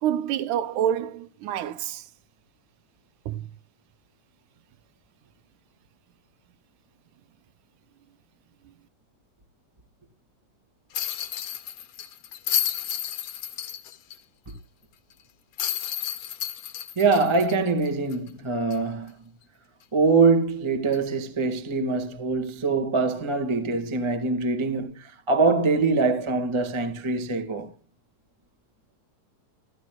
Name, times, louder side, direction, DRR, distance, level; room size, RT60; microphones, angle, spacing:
voice 1, 0.0-2.1 3.3-3.5, right 10 dB, 75° right, 2.2 m, -27 dB
sound 1, 10.9-14.2 14.5-14.6 15.6-18.3 18.7-18.8 20.9-21.1, left 11 dB, 65° left, 2.0 m, -31 dB
voice 2, 16.9-19.1 19.9-27.7, right 4 dB, 20° right, 0.7 m, -23 dB
15.5 x 14.5 x 2.3 m
omnidirectional pair, 3.7 m